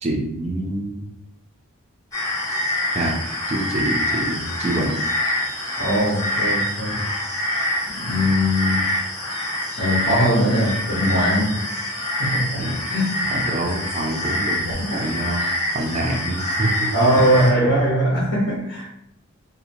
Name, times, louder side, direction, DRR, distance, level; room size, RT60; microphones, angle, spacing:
voice 1, 0.0-1.1 2.9-3.2 3.5-5.0 12.6-12.7 13.3-15.5 15.7-16.9, right 1 dB, 30° right, 1 dB, 0.4 m, -26 dB
sound 1, 2.1-17.5, left 1 dB, 15° left, 0.6 m, -26 dB
voice 2, 5.8-7.1 7.9-9.0 9.8-11.6 12.2-13.5 14.7-15.1 16.9-18.9, equal, 75° left, -6 dB, 0.7 m, -21 dB
2.6 x 2.1 x 2.8 m, 0.81 s
head